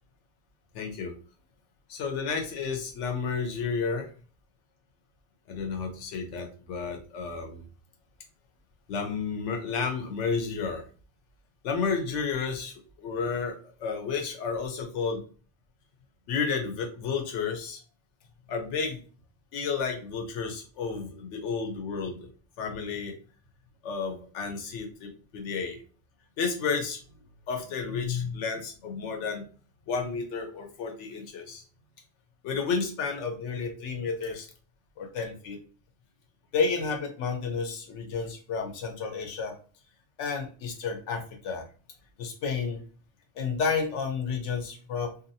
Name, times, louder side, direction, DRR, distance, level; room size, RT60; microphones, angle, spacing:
voice 1, 0.7-1.1 1.9-4.1 5.5-7.6 8.9-10.8 11.6-15.2 16.3-17.8 18.5-19.0 19.5-22.3 22.6-23.2 23.8-25.8 26.4-27.0 27.5-29.4 29.9-31.6 32.4-34.5 35.0-35.6 36.5-39.6 40.2-41.6 42.2-42.8 43.4-45.1, left 5 dB, 65° left, 3 dB, 1.0 m, -31 dB
2.7 x 2.3 x 2.7 m, 0.38 s
omnidirectional pair, 1.4 m